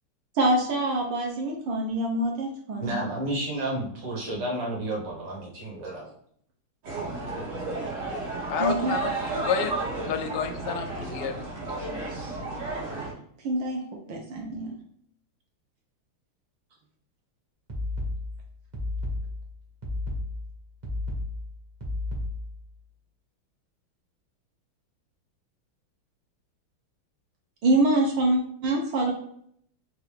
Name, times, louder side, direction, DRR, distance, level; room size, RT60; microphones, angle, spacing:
voice 1, 0.4-3.0 8.6-9.0 13.4-14.7 27.6-29.1, right 2 dB, 70° right, 0 dB, 1.3 m, -25 dB
voice 2, 2.8-6.1, right 1 dB, 55° right, -3 dB, 1.6 m, -31 dB
sound 1, 6.8-13.1, right 3 dB, 85° right, 2.3 m, -32 dB
voice 3, 8.5-9.7 10.0-11.3, left 7 dB, 85° left, 7 dB, 1.5 m, -30 dB
sound 2, 17.7-22.7, left 2 dB, 35° right, 0.7 m, -33 dB
4.7 x 2.5 x 3.3 m, 0.65 s
omnidirectional pair, 2.4 m